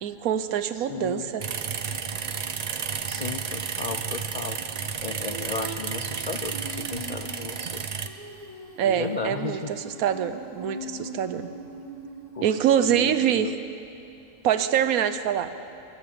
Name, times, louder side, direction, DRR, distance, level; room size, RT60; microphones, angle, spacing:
voice 1, 0.0-1.4 8.8-11.5 12.4-13.5 14.4-15.5, right 9 dB, 90° right, 12 dB, 1.2 m, -25 dB
voice 2, 0.7-1.3 3.1-4.6 5.0-7.9 8.8-9.7 12.3-12.5 12.8-13.5, left 5 dB, 85° left, 7 dB, 0.3 m, -35 dB
sound 1, 1.4-8.1, right 6 dB, 50° right, 0.5 m, -32 dB
Female singing, 5.1-12.7, right 2 dB, 25° right, 1.5 m, -41 dB
23.5 x 9.1 x 6.8 m, 2.7 s
omnidirectional pair, 1.5 m